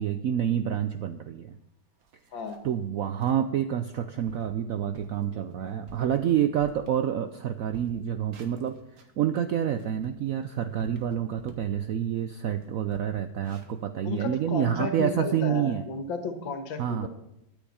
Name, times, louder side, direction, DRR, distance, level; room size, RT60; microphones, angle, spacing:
voice 1, 0.0-1.6 2.6-8.8 9.2-15.8 16.8-17.1, right 9 dB, 75° right, 10 dB, 0.8 m, -28 dB
sound 1, 1.5-1.6 2.0-2.8 3.2-3.4 3.9-4.0 4.3-4.6 4.9-5.2 5.7-7.4 7.6-9.2 9.6-11.8 12.1-12.2 12.5-14.6, right 5 dB, 55° right, 1.7 m, -50 dB
voice 2, 2.3-2.6 14.0-17.1, left 4 dB, 80° left, 7 dB, 2.2 m, -33 dB
22.5 x 7.8 x 4.3 m, 0.85 s
omnidirectional pair, 2.1 m